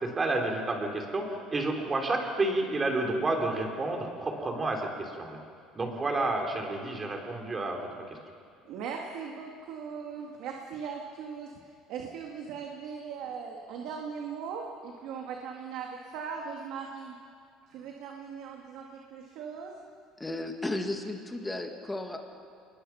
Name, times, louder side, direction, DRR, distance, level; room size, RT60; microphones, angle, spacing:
voice 1, 0.0-5.4 5.7-8.2, right 2 dB, 20° right, 2 dB, 3.2 m, -30 dB
voice 2, 8.6-17.2 17.7-19.7, right 6 dB, 65° right, 1 dB, 2.1 m, -39 dB
voice 3, 20.2-22.2, left 2 dB, 10° left, 4 dB, 1.9 m, -34 dB
27.5 x 21.0 x 5.8 m, 2.3 s
cardioid pair, 145°, 0 cm